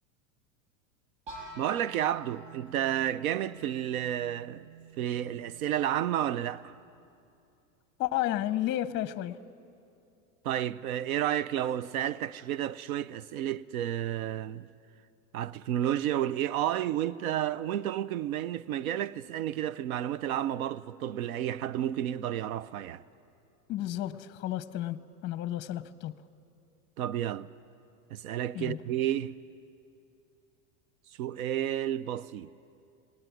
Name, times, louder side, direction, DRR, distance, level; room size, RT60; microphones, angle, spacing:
sound 1, 1.3-7.1, right 3 dB, 65° right, 6.8 m, -49 dB
voice 1, 1.6-4.7 5.0-6.7 10.4-14.7 15.3-23.0 27.0-27.5 28.1-29.4 31.2-32.5, right 11 dB, 90° right, 0.7 m, -31 dB
voice 2, 8.0-9.4 23.7-26.1 28.5-28.8, left 13 dB, 25° left, 0.6 m, -32 dB
20.0 x 19.5 x 9.2 m
supercardioid pair, 130°, 41 cm